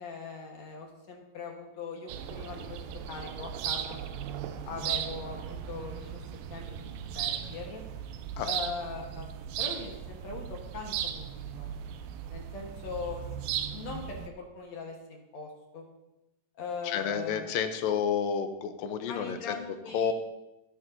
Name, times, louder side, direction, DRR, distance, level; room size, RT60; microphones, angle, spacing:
voice 1, 0.0-2.8 3.1-4.0 4.7-6.2 6.5-7.8 8.4-9.3 9.6-11.7 12.3-13.2 13.7-15.8 16.6-17.5 19.1-20.1, left 4 dB, 60° left, 1 dB, 2.2 m, -40 dB
sound 1, 2.1-14.3, right 9 dB, 85° right, 2.4 m, -37 dB
voice 2, 16.8-20.1, left 7 dB, 80° left, 8 dB, 2.4 m, -30 dB
16.0 x 10.5 x 2.7 m, 0.97 s
omnidirectional pair, 4.1 m